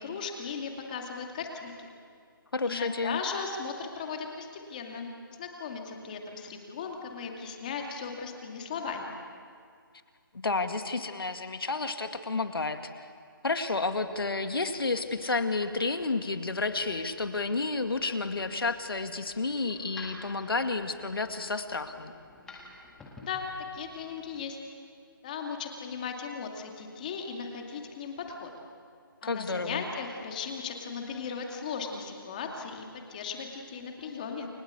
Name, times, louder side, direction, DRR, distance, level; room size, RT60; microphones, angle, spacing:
voice 1, 0.0-1.9 2.6-9.1 23.2-23.5 23.7-24.6 25.2-28.5 29.2-34.5, left 5 dB, 20° left, 2 dB, 2.4 m, -37 dB
voice 2, 2.5-3.2 10.4-12.8 13.4-22.1 29.2-29.8, left 3 dB, 80° left, 7 dB, 2.3 m, -31 dB
sound 1, 13.9-24.5, left 2 dB, 5° left, 1.8 m, -53 dB
29.5 x 19.5 x 8.3 m, 2.2 s
figure-of-eight pair, 170°, 12 cm